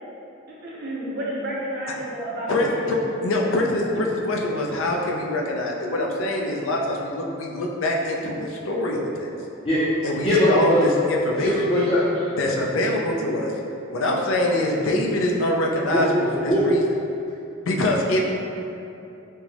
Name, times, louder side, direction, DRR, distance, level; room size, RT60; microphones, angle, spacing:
voice 1, 0.6-2.9, right 1 dB, 50° right, -5 dB, 0.6 m, -31 dB
voice 2, 2.5-9.3 10.0-11.5 12.4-13.5 13.9-16.1 16.4-16.8 17.6-18.2, left 1 dB, 85° left, -1 dB, 0.4 m, -24 dB
voice 3, 10.2-10.8 11.3-12.2 15.9-16.0 16.4-16.7, equal, 25° left, -12 dB, 0.5 m, -20 dB
4.3 x 2.0 x 2.8 m, 2.7 s
head